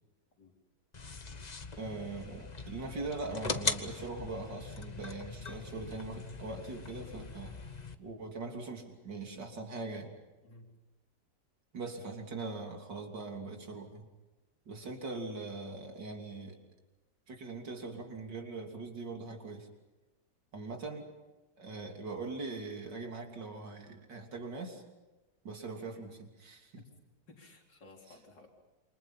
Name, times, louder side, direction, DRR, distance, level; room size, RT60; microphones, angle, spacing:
sound 1, 0.9-7.9, left 4 dB, 30° left, 1.1 m, -40 dB
voice 1, 1.8-7.5 8.0-10.1 11.7-14.1 14.7-16.6 17.3-19.7 20.5-21.1 21.6-24.8 25.4-26.8, right 3 dB, 75° right, 3 dB, 3.7 m, -41 dB
voice 2, 10.4-10.8 14.8-14.9 26.8-26.9 27.3-28.5, left 2 dB, 75° left, 1 dB, 4.7 m, -56 dB
28.0 x 25.5 x 5.7 m, 1.1 s
omnidirectional pair, 1.9 m